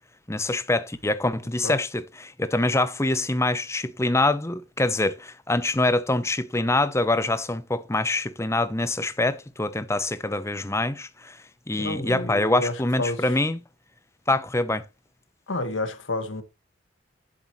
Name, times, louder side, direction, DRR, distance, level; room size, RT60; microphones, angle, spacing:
voice 1, 0.3-11.4 11.7-13.6 14.3-14.8, left 2 dB, 15° left, 0.8 m, -25 dB
voice 2, 11.8-13.2 15.5-16.4, left 2 dB, 75° left, 1.8 m, -30 dB
11.5 x 8.0 x 3.1 m
head